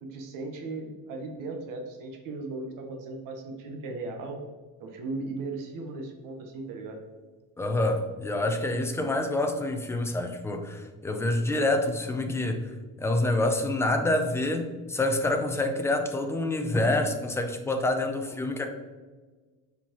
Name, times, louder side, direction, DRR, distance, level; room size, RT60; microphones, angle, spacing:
voice 1, 0.0-4.4 4.8-7.0, right 3 dB, 70° right, 3 dB, 1.2 m, -37 dB
voice 2, 7.6-12.7 13.0-18.7, left 2 dB, 10° left, 5 dB, 0.5 m, -27 dB
6.7 x 5.7 x 3.0 m, 1.3 s
cardioid pair, 160°, 33 cm